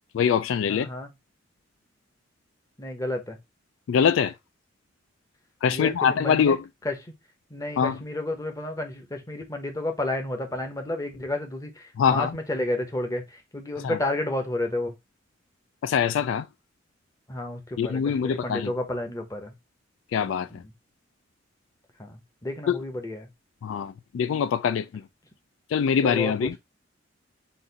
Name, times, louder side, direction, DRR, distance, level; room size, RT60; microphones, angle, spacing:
voice 1, 0.1-0.9 3.9-4.3 5.6-6.6 7.8-8.0 12.0-12.4 13.8-14.0 15.8-16.5 17.8-18.7 20.1-20.6 22.7-22.8 23.6-25.0 25.7-26.6, left 7 dB, 80° left, 0.3 m, -23 dB
voice 2, 0.7-1.1 2.8-3.4 5.7-6.6 6.8-6.9 7.5-13.2 13.5-14.9 17.3-19.5 20.5-20.6 22.0-23.3 26.0-26.6, left 1 dB, 15° left, 0.8 m, -31 dB
4.0 x 2.5 x 3.9 m
head